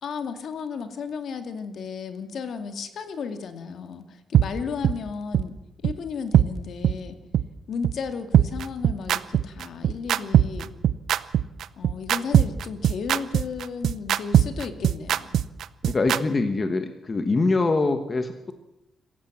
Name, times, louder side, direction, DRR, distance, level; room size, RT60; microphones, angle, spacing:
voice 1, 0.0-5.6 5.8-7.2 7.7-10.7 11.8-15.4, left 5 dB, 55° left, 7 dB, 2.3 m, -34 dB
sound 1, 4.3-4.4 4.8-4.9 5.3-5.4 5.8-5.9 6.3-6.5 6.8-6.9 7.3-7.4 7.8-7.9 8.3-16.2, right 10 dB, 75° right, 0.7 m, -19 dB
voice 2, 15.8-18.5, left 3 dB, 25° left, 7 dB, 1.3 m, -24 dB
26.5 x 15.0 x 7.4 m, 0.89 s
wide cardioid pair, 160°, 0 cm